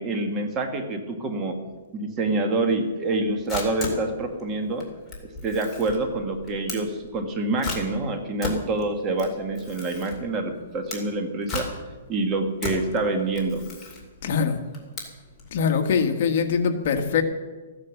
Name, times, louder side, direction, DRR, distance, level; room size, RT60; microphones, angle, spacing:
voice 1, 0.0-1.6 1.9-4.9 5.4-11.7 12.1-13.6, right 2 dB, 20° right, 5 dB, 1.5 m, -26 dB
Camera, 3.1-15.5, left 3 dB, 10° left, 2.6 m, -36 dB
voice 2, 14.2-14.6 15.5-17.2, left 6 dB, 45° left, 6 dB, 1.5 m, -23 dB
14.5 x 9.7 x 7.2 m, 1.3 s
hypercardioid pair, 165°, 0 cm